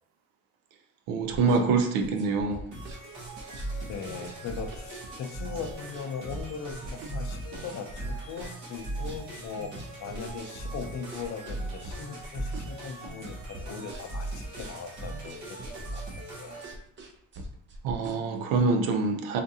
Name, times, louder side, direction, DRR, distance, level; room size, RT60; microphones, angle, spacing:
voice 1, 1.1-2.6 17.8-19.4, right 4 dB, 90° right, 5 dB, 0.6 m, -25 dB
sound 1, 1.2-18.6, right 1 dB, 35° right, 0.5 m, -44 dB
sound 2, 2.7-16.7, right 2 dB, 65° right, 1.4 m, -39 dB
voice 2, 3.9-9.7 10.0-16.6, left 6 dB, 55° left, 6 dB, 0.6 m, -39 dB
3.6 x 2.5 x 2.7 m, 0.67 s
cardioid pair, 105°, 33 cm